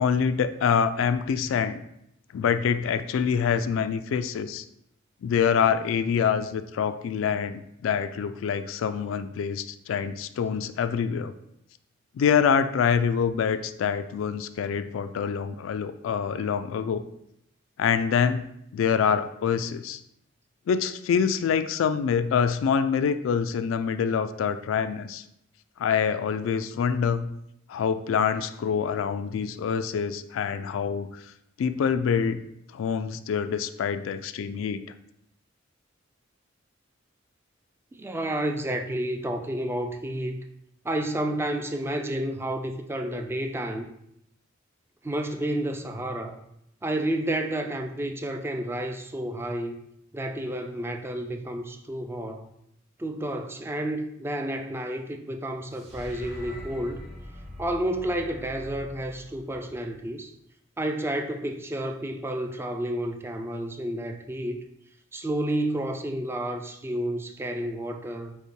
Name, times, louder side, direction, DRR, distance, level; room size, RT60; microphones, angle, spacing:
voice 1, 0.0-1.8 2.3-4.6 5.2-11.3 12.1-17.0 17.8-18.5 18.7-20.0 20.7-25.2 25.8-27.3 27.7-31.1 31.6-32.4 32.7-34.8, left 7 dB, 90° left, 11 dB, 0.3 m, -25 dB
voice 2, 37.9-40.4 40.8-43.9 45.0-46.4 46.8-49.8 50.1-52.5 53.0-57.0 57.6-60.3 60.8-64.6 65.1-68.4, right 1 dB, 10° right, 5 dB, 0.3 m, -30 dB
sound 1, 55.7-60.1, left 1 dB, 30° right, 1.1 m, -43 dB
5.4 x 2.1 x 4.5 m, 0.77 s
head